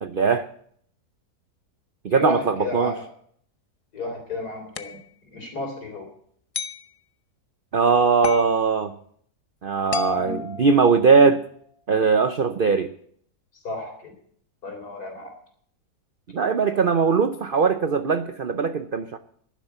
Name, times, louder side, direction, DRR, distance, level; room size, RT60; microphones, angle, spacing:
voice 1, 0.0-0.4 2.0-2.9 7.7-8.9 9.6-11.4 11.9-12.9 16.3-19.2, right 5 dB, 60° right, 9 dB, 0.5 m, -20 dB
voice 2, 2.1-3.1 3.9-5.0 5.3-6.1 10.1-10.4 13.6-14.1 14.6-15.3, left 2 dB, 65° left, 3 dB, 4.2 m, -32 dB
sound 1, 4.8-5.0 6.5-6.9 8.2-8.5 9.9-11.3, left 4 dB, 45° left, 0.4 m, -31 dB
11.5 x 10.5 x 7.9 m, 0.63 s
omnidirectional pair, 1.8 m